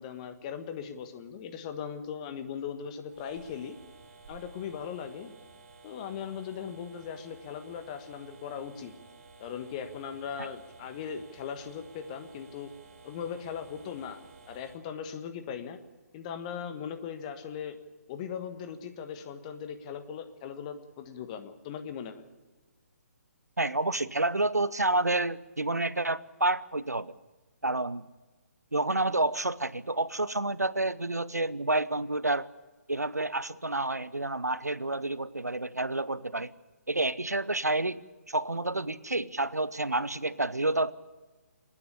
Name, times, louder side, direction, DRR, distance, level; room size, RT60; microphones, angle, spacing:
voice 1, 0.0-3.8 4.3-5.3 5.8-8.9 9.4-12.7 13.0-14.2 14.5-15.8 16.1-17.8 18.1-22.2, left 7 dB, 25° left, 8 dB, 1.4 m, -39 dB
sound 1, 3.1-14.8, right 3 dB, 40° right, 4.7 m, -54 dB
voice 2, 23.6-27.1 27.6-28.1 28.7-32.5 32.9-36.5 36.9-38.0 38.3-40.9, right 2 dB, 80° right, 17 dB, 0.8 m, -29 dB
28.5 x 9.9 x 10.0 m, 1.2 s
figure-of-eight pair, 135°, 9 cm